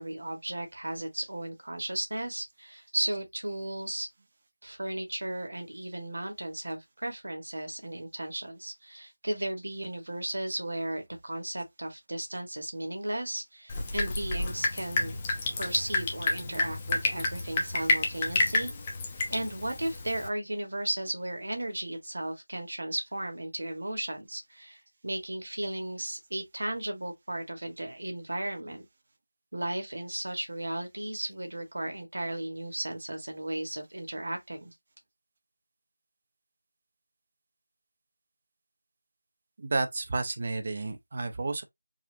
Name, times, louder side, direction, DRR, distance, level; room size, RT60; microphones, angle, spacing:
voice 1, 0.0-4.1 4.6-15.2 15.6-18.7 19.3-28.9 29.5-34.7, right 1 dB, 65° right, 1.5 m, -35 dB
Drip, 13.7-20.3, left 2 dB, 20° left, 0.7 m, -30 dB
voice 2, 39.6-41.6, right 3 dB, 40° right, 0.6 m, -31 dB
4.8 x 2.4 x 2.6 m
figure-of-eight pair, 170°, 0 cm